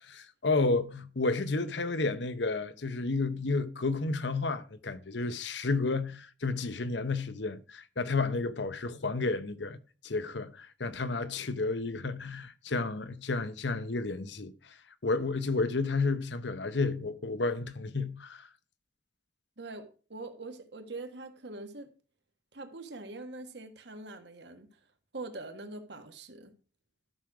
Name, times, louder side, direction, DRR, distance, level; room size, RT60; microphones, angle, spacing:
voice 1, 0.0-9.8 10.0-14.8 15.0-18.5, left 3 dB, 75° left, 0.9 m, -31 dB
voice 2, 19.6-21.9 22.5-24.8 25.1-26.5, right 2 dB, 70° right, 1.6 m, -43 dB
13.0 x 6.4 x 4.8 m
head